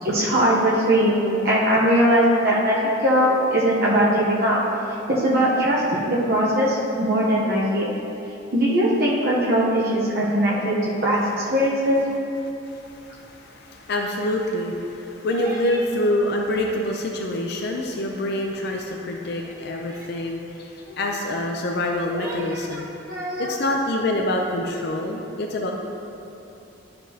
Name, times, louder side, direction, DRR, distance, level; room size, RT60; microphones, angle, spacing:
voice 1, 0.0-4.6 5.1-8.0 8.5-10.8 11.0-11.2 11.4-12.0 15.3-15.8 19.9-20.1 20.9-21.0 22.1-22.8 23.1-23.5, equal, 50° right, -6 dB, 1.0 m, -21 dB
voice 2, 12.6-22.9 23.4-25.7, left 1 dB, 55° left, 0 dB, 0.5 m, -26 dB
12.0 x 5.1 x 2.9 m, 2.9 s
head